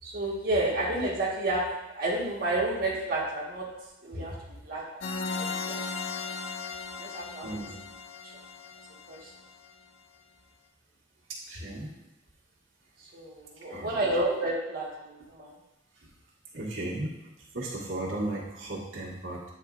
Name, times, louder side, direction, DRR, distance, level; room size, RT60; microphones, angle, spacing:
voice 1, 0.0-1.7 1.9-4.4 4.6-5.0 5.3-5.8 6.1-6.3 7.0-7.5 8.2-8.3 9.1-9.3 13.0-15.6, right 2 dB, 50° right, -6 dB, 1.3 m, -31 dB
sound 1, 5.0-9.7, left 4 dB, 80° left, 0.4 m, -37 dB
voice 2, 7.4-7.8 11.3-11.9 13.7-14.0 16.5-17.1 17.5-19.4, right 1 dB, 85° right, -5 dB, 1.6 m, -35 dB
9.2 x 4.3 x 2.4 m, 0.94 s
head